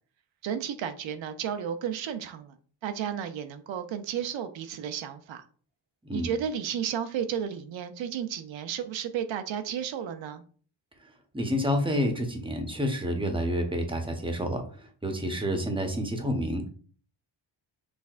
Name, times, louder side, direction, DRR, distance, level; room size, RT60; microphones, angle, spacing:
voice 1, 0.4-2.6 2.8-5.4 6.1-10.4, right 8 dB, 85° right, 8 dB, 0.6 m, -33 dB
voice 2, 11.3-14.6 15.0-16.7, equal, 10° right, 4 dB, 0.9 m, -28 dB
6.3 x 3.4 x 2.4 m, 0.43 s
wide cardioid pair, 120°, 44 cm